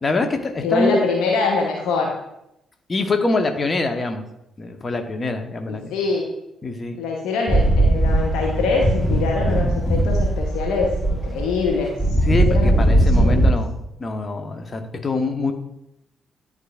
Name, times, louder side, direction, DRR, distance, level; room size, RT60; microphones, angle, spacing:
voice 1, 0.0-1.0 2.9-4.2 4.6-5.9 6.6-7.0 12.3-13.7 14.0-15.5, left 2 dB, 35° left, 5 dB, 1.0 m, -24 dB
voice 2, 0.6-2.1 5.7-6.2 7.0-13.5, left 4 dB, 65° left, 0 dB, 0.8 m, -24 dB
sound 1, 7.5-13.5, right 1 dB, 5° left, 1.1 m, -19 dB
11.0 x 4.0 x 2.4 m, 0.84 s
figure-of-eight pair, 40°, 0 cm